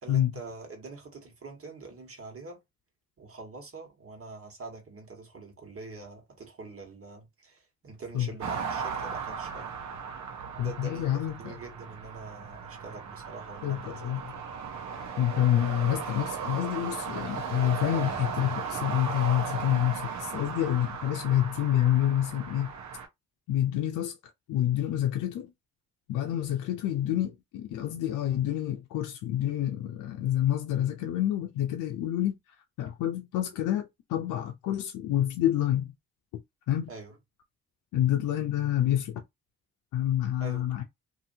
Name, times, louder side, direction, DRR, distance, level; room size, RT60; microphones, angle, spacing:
voice 1, 0.0-2.6 3.2-9.7 10.6-14.1 36.9-37.2 40.4-40.6, right 3 dB, 50° right, 1.6 m, -44 dB
sound 1, 8.4-23.1, right 6 dB, 70° right, 0.8 m, -36 dB
voice 2, 10.6-11.6 13.6-14.2 15.2-22.7 23.5-24.1 24.5-25.5 26.1-32.3 32.8-35.9 36.7-36.9 37.9-39.2 39.9-40.8, left 12 dB, 85° left, 0.5 m, -28 dB
2.7 x 2.7 x 2.7 m
supercardioid pair, 50°, 30 cm